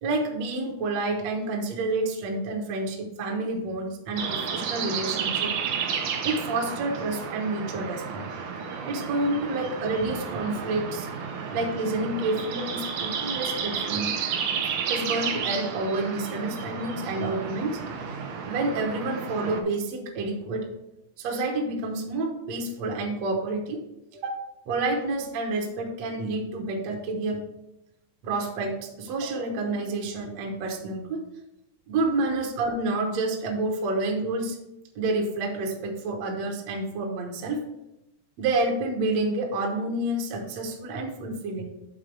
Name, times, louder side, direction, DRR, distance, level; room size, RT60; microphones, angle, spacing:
voice 1, 0.0-5.5 6.2-8.2 8.9-11.1 11.5-14.1 14.9-17.8 18.4-20.6 21.2-23.8 24.1-24.3 24.7-27.4 28.2-31.2 31.9-34.6 35.0-37.6 38.4-41.7, right 2 dB, 70° right, 1 dB, 1.6 m, -29 dB
sound 1, 4.2-19.6, right 6 dB, 90° right, 1.6 m, -32 dB
6.7 x 3.9 x 6.0 m, 0.89 s
omnidirectional pair, 4.4 m